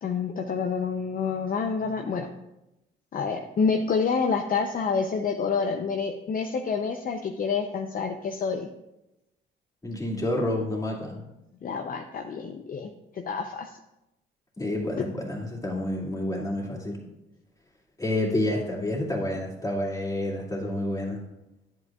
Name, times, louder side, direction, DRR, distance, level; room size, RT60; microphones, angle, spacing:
voice 1, 0.0-2.3 3.1-8.7 11.6-13.7, left 5 dB, 45° left, 4 dB, 0.6 m, -28 dB
voice 2, 9.8-11.2 14.6-17.0 18.0-21.2, left 1 dB, 15° left, -3 dB, 2.4 m, -29 dB
10.5 x 8.0 x 2.4 m, 0.92 s
cardioid pair, 90°, 20 cm